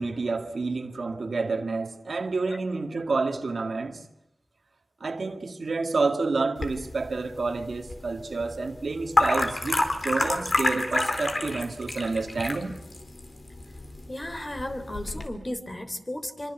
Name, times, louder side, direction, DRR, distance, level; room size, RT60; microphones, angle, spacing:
voice 1, 0.0-4.0 5.0-12.7, right 3 dB, 75° right, 2.0 m, -29 dB
sound 1, 6.6-15.3, left 2 dB, 55° left, 4.2 m, -29 dB
voice 2, 14.1-16.5, left 1 dB, 30° left, 3.4 m, -34 dB
25.5 x 25.0 x 8.1 m
cardioid pair, 50°, 0 cm